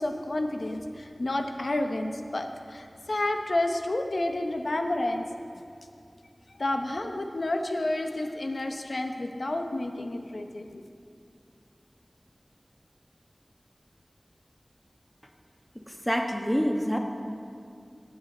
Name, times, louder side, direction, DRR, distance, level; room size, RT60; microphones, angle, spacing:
voice 1, 0.0-5.3 6.5-10.8, left 1 dB, 80° left, 5 dB, 0.8 m, -30 dB
voice 2, 16.1-17.0, equal, 10° left, 2 dB, 1.2 m, -26 dB
17.0 x 7.4 x 4.3 m, 2.4 s
wide cardioid pair, 40°, 0 cm